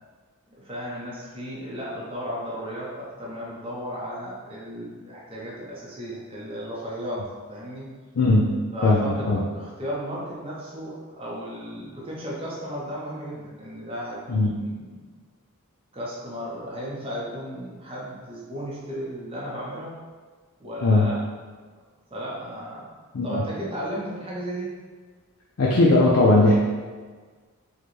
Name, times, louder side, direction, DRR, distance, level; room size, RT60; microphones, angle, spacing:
voice 1, 0.6-7.2 7.5-7.9 8.7-15.1 15.9-20.0 20.6-21.2 22.1-22.9 23.2-24.7, equal, 25° right, -5 dB, 0.6 m, -34 dB
voice 2, 8.2-8.5 8.8-9.4 14.3-14.5 20.8-21.1 23.1-23.4 25.6-26.5, left 2 dB, 65° left, -4 dB, 0.5 m, -18 dB
4.8 x 2.2 x 3.1 m, 1.5 s
head